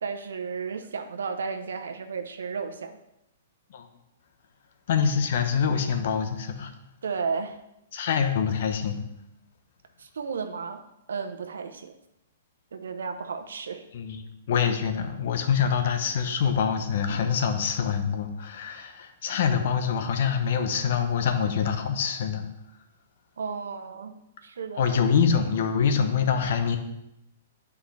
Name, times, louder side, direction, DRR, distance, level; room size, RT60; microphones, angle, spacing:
voice 1, 0.0-3.0 7.0-7.6 10.0-10.8 11.1-11.9 12.7-13.9 23.4-24.2 24.4-25.0, right 5 dB, 80° right, 7 dB, 0.8 m, -33 dB
voice 2, 4.9-6.7 7.9-9.0 13.9-22.5 24.8-26.8, left 7 dB, 60° left, 7 dB, 0.9 m, -25 dB
9.0 x 4.8 x 3.3 m, 0.85 s
hypercardioid pair, 135°, 0 cm